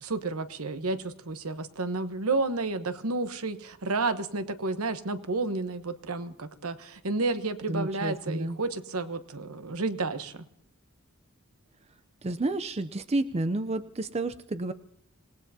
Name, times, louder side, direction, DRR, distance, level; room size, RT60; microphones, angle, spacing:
voice 1, 0.0-10.4, right 3 dB, 85° right, 10 dB, 1.1 m, -31 dB
voice 2, 7.7-8.6 12.2-14.7, right 2 dB, 30° right, 10 dB, 0.5 m, -30 dB
27.0 x 18.5 x 2.8 m, 0.73 s
head